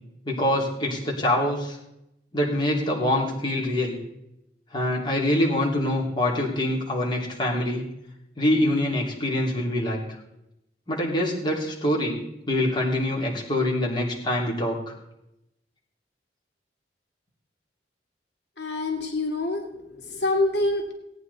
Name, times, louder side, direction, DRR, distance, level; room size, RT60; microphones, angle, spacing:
voice 1, 0.2-1.8 2.3-4.0 4.7-7.8 8.4-10.0 10.9-12.2 12.5-14.9, left 1 dB, 25° left, -3 dB, 3.0 m, -25 dB
voice 2, 18.6-20.9, left 2 dB, 80° left, 2 dB, 2.2 m, -26 dB
17.5 x 9.5 x 4.1 m, 0.85 s
head